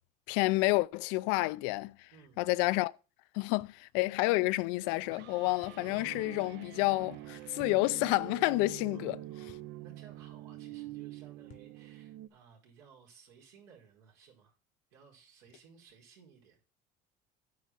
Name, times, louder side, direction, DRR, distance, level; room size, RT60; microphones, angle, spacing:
voice 1, 0.3-1.9 2.4-2.9 3.3-9.2, left 22 dB, 85° left, 0.5 m, -29 dB
voice 2, 2.1-2.6 8.9-14.6 14.9-16.6, right 6 dB, 85° right, 4.9 m, -59 dB
sound 1, 3.6-3.8 5.6-5.9 7.6-7.8 9.5-9.8 11.5-11.8, left 9 dB, 40° left, 0.9 m, -57 dB
sound 2, 4.0-12.3, right 14 dB, 65° right, 0.8 m, -46 dB
9.5 x 4.9 x 7.5 m
cardioid pair, 130°, 20 cm